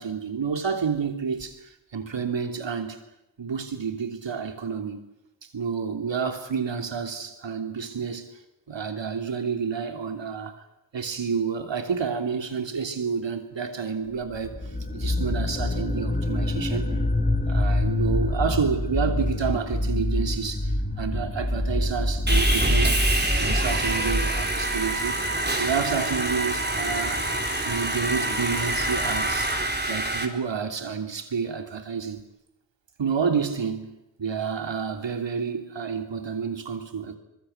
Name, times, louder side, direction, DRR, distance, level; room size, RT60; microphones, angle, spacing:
voice 1, 0.0-3.0 3.4-5.0 5.4-8.3 8.7-10.5 10.9-14.6 14.9-16.9 17.5-23.0 23.4-25.2 25.6-27.3 27.6-29.5 29.9-32.2 33.0-37.2, right 6 dB, 80° right, 3.2 m, -29 dB
sound 1, 14.3-25.0, left 1 dB, 20° left, 4.2 m, -26 dB
Sawing, 22.3-30.2, right 1 dB, 25° right, 4.1 m, -26 dB
25.0 x 22.5 x 8.1 m
cardioid pair, 55°, 44 cm